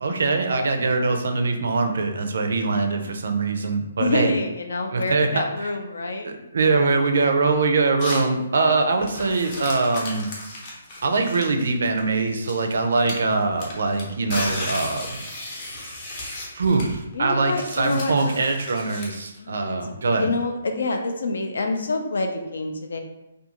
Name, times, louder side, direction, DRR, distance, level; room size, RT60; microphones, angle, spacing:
voice 1, 0.0-4.3 4.9-5.7 6.2-10.3 11.0-15.2 16.5-20.3, right 3 dB, 70° right, 5 dB, 0.4 m, -23 dB
voice 2, 4.0-6.3 8.6-8.8 17.1-18.4 19.4-23.0, left 2 dB, 80° left, 4 dB, 0.4 m, -27 dB
sound 1, 8.0-8.3 8.9-12.7 13.1-19.4, left 1 dB, 35° left, 0.7 m, -35 dB
2.4 x 2.3 x 2.9 m, 0.93 s
hypercardioid pair, 160°, 0 cm